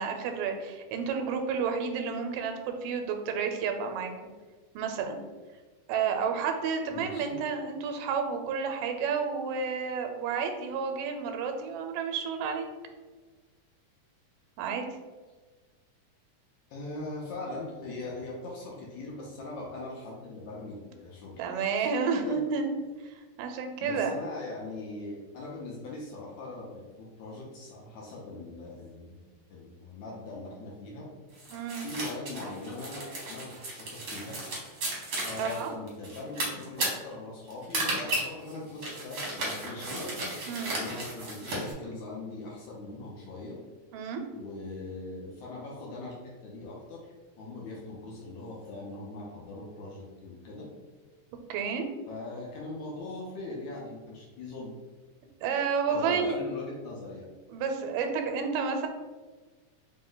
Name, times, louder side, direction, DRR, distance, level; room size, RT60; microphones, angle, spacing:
voice 1, 0.0-4.1 4.8-5.2 5.9-12.7 14.6-14.8 21.4-22.7 23.0-24.1 31.5-31.9 35.4-35.7 40.5-40.8 43.9-44.2 51.5-51.8 55.4-56.4 57.5-58.9, right 6 dB, 85° right, 5 dB, 2.1 m, -31 dB
voice 2, 6.9-7.4 16.7-21.4 21.8-22.4 23.8-29.2 29.5-31.1 31.8-34.4 35.2-40.0 40.7-43.6 44.3-46.1 46.4-50.7 52.1-54.7 55.9-57.3, left 2 dB, 75° left, -4 dB, 1.8 m, -41 dB
sound 1, 31.4-41.7, right 1 dB, 65° right, 1.0 m, -34 dB
5.1 x 2.1 x 3.8 m, 1.3 s
omnidirectional pair, 3.8 m